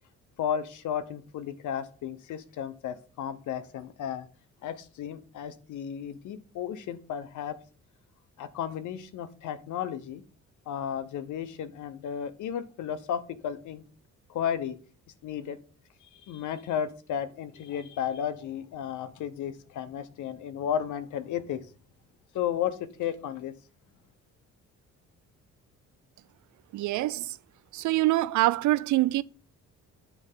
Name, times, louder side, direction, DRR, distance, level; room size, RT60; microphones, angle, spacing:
voice 1, 0.4-4.3 4.6-7.6 8.4-10.2 10.7-13.8 14.3-14.8 15.2-15.6 16.0-21.7 22.3-23.5, left 9 dB, 75° left, 0.9 m, -33 dB
voice 2, 26.7-27.4 27.7-29.2, right 17 dB, 75° right, 0.5 m, -25 dB
9.6 x 3.3 x 5.5 m
cardioid pair, 90°, 30 cm